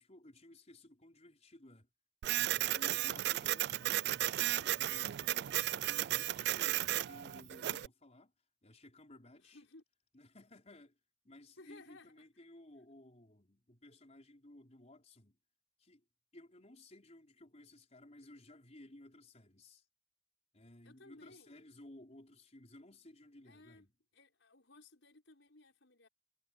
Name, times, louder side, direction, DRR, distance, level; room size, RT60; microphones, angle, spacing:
voice 1, 0.0-1.9 2.3-5.6 5.8-8.3 8.6-9.6 10.1-11.0 11.2-15.4 15.8-16.0 16.3-19.8 20.5-23.9, left 1 dB, 35° left, 4.8 m, -57 dB
Printer, 2.2-7.9, right 14 dB, 60° right, 0.3 m, -34 dB
voice 2, 3.2-3.7 9.3-9.8 11.6-12.3 20.8-21.6 23.4-23.9 24.1-26.1, left 2 dB, 80° left, 5.4 m, -59 dB
head